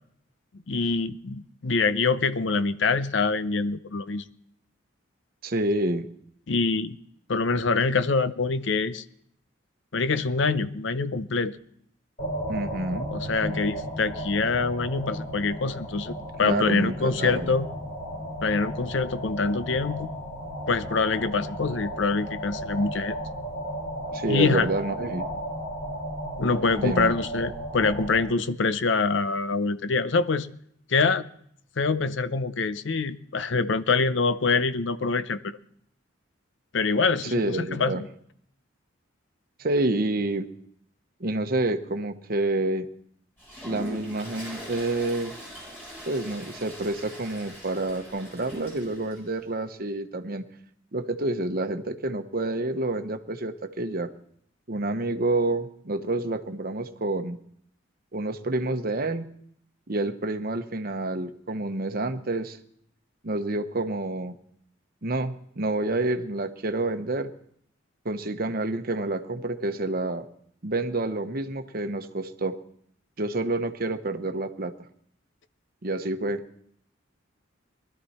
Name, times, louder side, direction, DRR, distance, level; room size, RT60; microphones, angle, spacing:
voice 1, 0.7-4.2 6.5-7.0 7.3-9.0 9.9-11.6 13.1-17.7 18.4-20.1 20.7-23.2 24.3-24.7 26.4-30.5 30.9-31.2 31.8-35.4 36.7-38.1, left 4 dB, 65° left, 13 dB, 0.7 m, -25 dB
voice 2, 5.4-6.1 12.5-13.1 16.4-17.5 24.1-25.3 26.8-27.1 37.2-38.0 39.6-40.5 41.2-42.9 43.6-45.3 46.1-50.5 50.9-54.1 54.7-57.4 58.1-59.3 59.9-62.6 63.2-64.3 65.0-67.3 68.0-70.2 70.6-72.5 73.2-74.7 75.8-76.4, right 2 dB, 50° right, 8 dB, 1.0 m, -28 dB
sound 1, 12.2-28.3, equal, 35° left, 4.4 m, -34 dB
Toilet flush, 43.4-49.2, equal, 10° left, 7.9 m, -41 dB
20.5 x 12.5 x 4.3 m, 0.67 s
head